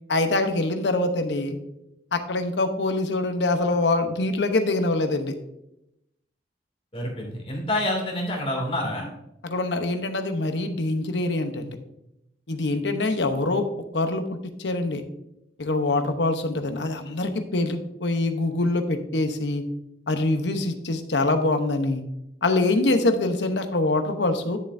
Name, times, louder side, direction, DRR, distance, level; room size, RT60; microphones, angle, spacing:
voice 1, 0.1-1.6 2.1-5.3 9.4-11.8 12.5-13.7 13.9-15.0 15.6-19.6 20.1-22.0 22.4-24.6, left 2 dB, 80° left, 7 dB, 0.9 m, -24 dB
voice 2, 6.9-9.1, left 1 dB, 35° left, -1 dB, 2.5 m, -27 dB
11.0 x 6.9 x 2.6 m, 0.82 s
head